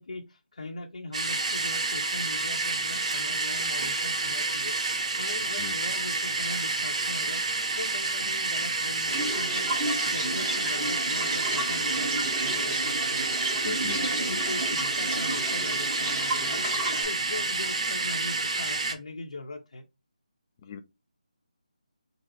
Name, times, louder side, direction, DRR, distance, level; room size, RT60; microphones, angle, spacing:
voice 1, 0.0-7.4 7.7-9.7 10.0-19.8, left 2 dB, 70° left, 0.8 m, -40 dB
sound 1, 1.1-18.9, right 3 dB, 55° right, 0.9 m, -29 dB
sound 2, 9.1-17.0, right 2 dB, 15° right, 1.0 m, -32 dB
voice 2, 13.6-14.4 20.6-20.8, left 6 dB, 20° left, 0.4 m, -39 dB
3.9 x 2.0 x 4.4 m
figure-of-eight pair, 165°, 4 cm